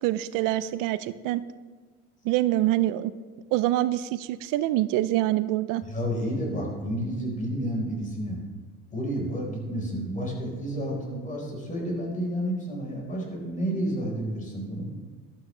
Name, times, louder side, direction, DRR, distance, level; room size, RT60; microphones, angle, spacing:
voice 1, 0.0-1.4 2.2-3.1 3.5-5.8, right 15 dB, 85° right, 14 dB, 0.6 m, -25 dB
voice 2, 5.8-8.4 8.9-14.9, equal, 25° left, -1 dB, 4.3 m, -30 dB
15.0 x 12.0 x 3.3 m, 1.4 s
cardioid pair, 115°, 31 cm